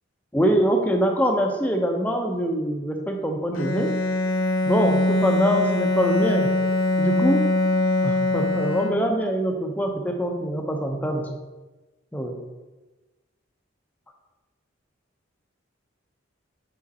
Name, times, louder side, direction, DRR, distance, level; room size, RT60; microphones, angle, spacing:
voice 1, 0.3-3.9 4.6-6.5 7.0-7.4 8.0-11.3 12.1-12.4, equal, 10° left, 2 dB, 0.6 m, -24 dB
Bowed string instrument, 3.5-9.3, left 1 dB, 80° left, 0.5 m, -23 dB
5.1 x 5.1 x 4.1 m, 1.2 s
head